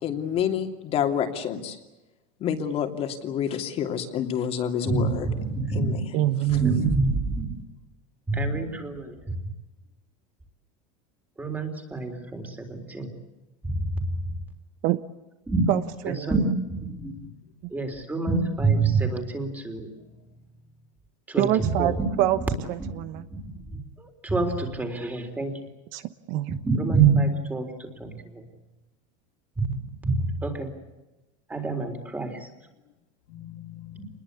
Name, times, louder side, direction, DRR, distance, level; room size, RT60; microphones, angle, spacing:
voice 1, 0.0-1.8 2.4-5.3 5.7-6.0, left 8 dB, 35° left, 2.9 m, -28 dB
voice 2, 4.8-6.0 6.5-7.5 8.3-9.4 11.4-13.1 13.6-14.3 15.5-15.6 16.1-17.1 17.7-19.9 21.3-22.2 22.8-22.9 23.3-23.4 23.7-25.6 26.6-28.4 29.6-30.7 31.5-32.5 34.0-34.1, right 4 dB, 10° right, 3.9 m, -26 dB
voice 3, 6.1-6.8 14.8-15.0 15.7-16.3 21.4-22.4 22.7-23.3 25.9-26.0 26.3-26.5, right 14 dB, 50° right, 1.0 m, -25 dB
voice 4, 11.9-13.2 16.9-17.4 19.9-20.5 28.0-28.3 32.3-32.4 33.3-34.0, left 6 dB, 70° left, 4.2 m, -46 dB
27.5 x 21.5 x 8.4 m
supercardioid pair, 150°, 17 cm